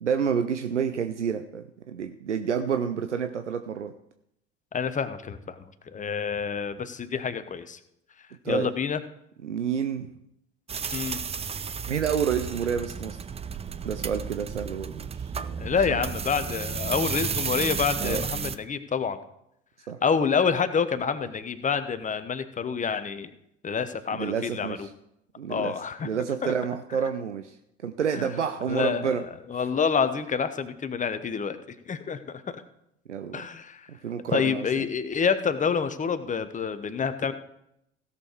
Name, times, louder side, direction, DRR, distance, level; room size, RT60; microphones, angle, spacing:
voice 1, 0.0-3.9 8.4-8.7 9.4-10.1 11.9-13.2 13.8-15.3 18.0-18.3 19.9-20.0 24.1-24.9 25.4-25.7 26.0-27.6 27.8-29.2 33.1-33.5 33.9-34.6, right 7 dB, 90° right, 8 dB, 0.6 m, -29 dB
voice 2, 4.7-5.6 5.9-7.8 8.5-9.0 10.9-11.2 15.6-19.2 20.0-23.3 23.6-24.9 25.5-26.1 26.4-26.5 28.1-28.3 28.7-29.2 29.5-31.6 31.9-32.6 33.3-33.9 34.3-37.3, left 6 dB, 20° left, 10 dB, 1.0 m, -27 dB
sound 1, 10.7-18.6, right 6 dB, 20° right, 0.6 m, -32 dB
16.0 x 6.9 x 4.6 m, 0.78 s
figure-of-eight pair, 65°, 35 cm